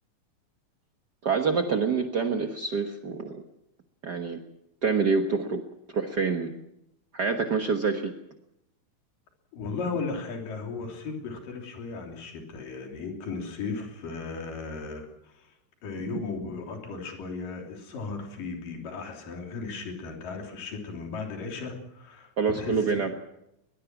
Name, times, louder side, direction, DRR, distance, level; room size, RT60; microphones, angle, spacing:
voice 1, 1.2-3.4 4.0-4.4 4.8-5.6 5.9-6.5 7.1-8.1 22.4-23.1, right 5 dB, 65° right, 5 dB, 1.0 m, -26 dB
voice 2, 9.5-15.5 15.8-23.2, left 4 dB, 70° left, 2 dB, 4.9 m, -36 dB
21.5 x 21.5 x 6.1 m, 0.82 s
omnidirectional pair, 4.0 m